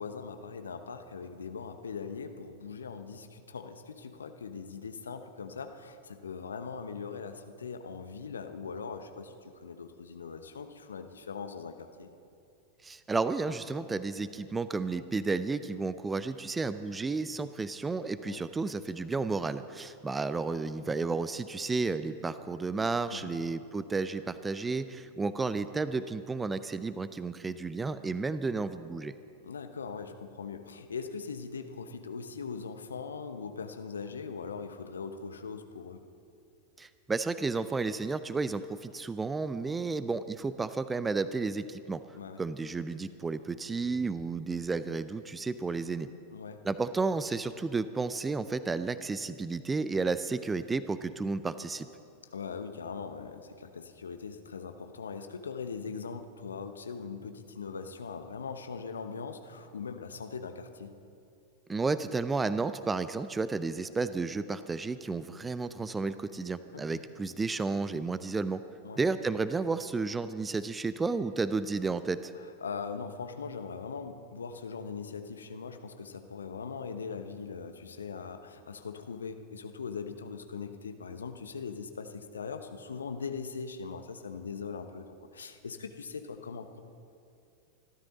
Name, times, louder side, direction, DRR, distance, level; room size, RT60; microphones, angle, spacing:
voice 1, 0.0-12.1 18.2-18.4 23.1-23.4 29.4-36.0 42.1-42.4 46.3-46.6 52.3-60.9 66.7-67.0 68.8-69.0 72.6-86.8, left 5 dB, 70° left, 8 dB, 1.0 m, -41 dB
voice 2, 12.8-29.2 36.8-42.0 42.4-46.1 46.6-51.9 61.7-68.6 69.0-72.3, right 4 dB, 15° right, 13 dB, 0.5 m, -32 dB
25.0 x 13.0 x 4.0 m, 2.5 s
figure-of-eight pair, 90°, 0 cm